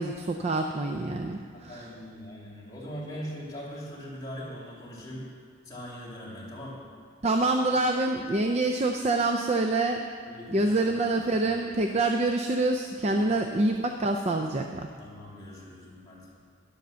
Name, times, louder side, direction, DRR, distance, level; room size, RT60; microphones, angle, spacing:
voice 1, 0.0-1.9 7.2-10.1 10.5-14.9, right 2 dB, 30° right, 5 dB, 0.4 m, -26 dB
voice 2, 1.5-5.3 5.6-6.8 10.3-11.0 11.4-11.6 13.2-13.3 15.0-16.3, equal, 20° left, -6 dB, 2.5 m, -41 dB
10.5 x 7.5 x 6.8 m, 2.2 s
head